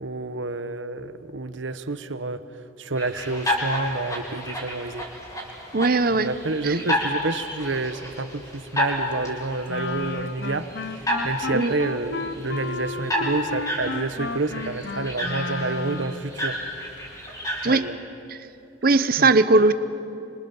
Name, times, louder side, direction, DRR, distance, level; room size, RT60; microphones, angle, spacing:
voice 1, 0.0-2.4 2.8-5.0 6.1-10.7 11.2-16.6 17.7-17.9 19.2-19.3, right 3 dB, 70° right, 12 dB, 1.1 m, -29 dB
sound 1, 2.9-17.8, left 1 dB, 15° left, 4.9 m, -31 dB
voice 2, 5.7-6.3 6.6-6.8 11.5-11.7 17.6-17.9 18.3-18.4 18.8-19.7, right 3 dB, 45° right, 13 dB, 0.8 m, -19 dB
Wind instrument woodwind instrument, 9.7-16.3, left 3 dB, 55° left, 0.9 m, -32 dB
26.5 x 25.5 x 7.2 m, 2.9 s
head